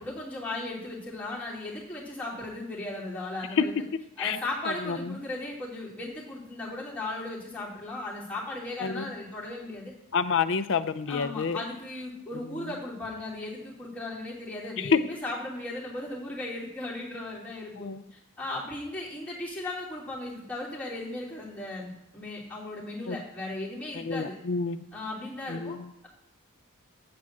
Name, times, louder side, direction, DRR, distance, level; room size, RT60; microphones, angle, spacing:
voice 1, 0.0-3.7 4.2-9.9 11.1-24.4 24.9-25.8, left 2 dB, 5° left, -7 dB, 2.9 m, -36 dB
voice 2, 4.7-5.2 8.8-9.0 10.1-11.6 14.8-15.0 17.8-18.0 23.1-23.2 23.9-24.9 25.5-25.8, left 5 dB, 60° left, 11 dB, 0.5 m, -28 dB
8.6 x 4.6 x 7.4 m, 0.80 s
head